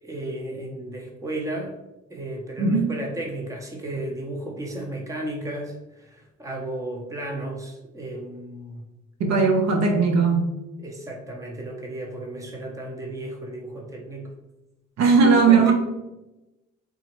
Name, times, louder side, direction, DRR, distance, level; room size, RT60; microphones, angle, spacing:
voice 1, 0.0-1.7 2.1-8.8 10.8-14.3 15.2-15.7, right 1 dB, 10° right, 0 dB, 0.6 m, -34 dB
voice 2, 9.2-10.5 15.0-15.7, right 4 dB, 65° right, 2 dB, 0.6 m, -18 dB
3.5 x 2.1 x 3.0 m, 0.98 s
cardioid pair, 90°, 30 cm